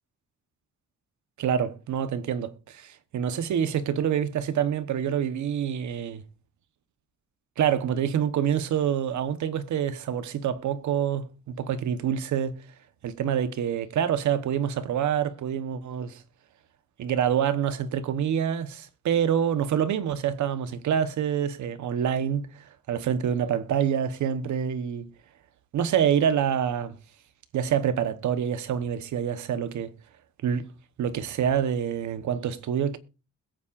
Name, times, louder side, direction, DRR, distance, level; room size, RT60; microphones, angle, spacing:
voice 1, 1.4-6.2 7.6-12.6 13.0-16.2 17.0-25.1 25.7-27.0 27.5-29.9 30.4-30.6 31.0-33.0, right 8 dB, 65° right, 1.1 m, -26 dB
21.5 x 8.6 x 2.5 m
cardioid pair, 145°, 31 cm